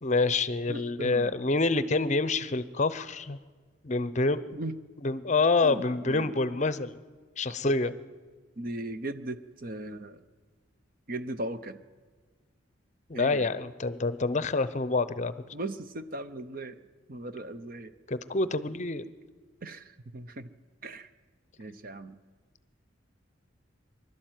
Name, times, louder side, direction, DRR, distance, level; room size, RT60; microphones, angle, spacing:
voice 1, 0.0-3.4 3.8-4.6 5.0-7.0 7.4-7.9 13.1-15.3 18.1-19.1, left 3 dB, 40° left, 15 dB, 0.6 m, -27 dB
voice 2, 0.7-1.3 4.5-4.7 5.6-6.4 8.6-10.2 11.1-11.8 13.1-13.5 15.5-16.8 17.1-17.9 19.6-20.5 20.8-21.1 21.6-22.2, right 1 dB, 45° right, 11 dB, 0.8 m, -38 dB
23.5 x 12.5 x 9.2 m, 1.5 s
head